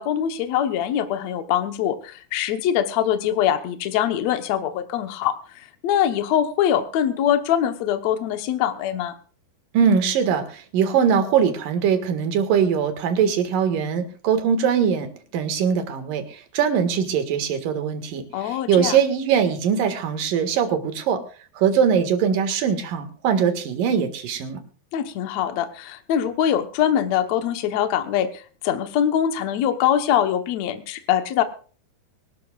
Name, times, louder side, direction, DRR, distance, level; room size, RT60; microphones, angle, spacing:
voice 1, 0.0-9.1 18.3-19.0 24.9-31.4, left 10 dB, 85° left, 8 dB, 1.5 m, -23 dB
voice 2, 9.7-21.2 21.6-24.6, right 7 dB, 60° right, 8 dB, 3.1 m, -21 dB
24.0 x 12.5 x 2.4 m, 0.39 s
omnidirectional pair, 4.8 m